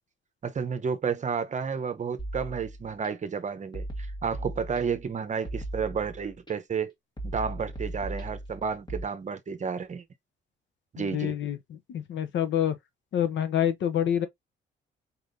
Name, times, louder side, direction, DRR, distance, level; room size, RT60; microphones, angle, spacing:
voice 1, 0.4-6.9 7.2-10.0 10.9-11.4, right 6 dB, 40° right, 0.8 m, -31 dB
sound 1, 2.2-3.1 3.7-5.1 5.4-6.5 7.2-9.0, right 1 dB, 20° left, 1.6 m, -37 dB
voice 2, 11.0-12.8 13.1-14.3, left 10 dB, 70° left, 0.9 m, -27 dB
4.4 x 3.5 x 2.6 m
cardioid pair, 90°, 20 cm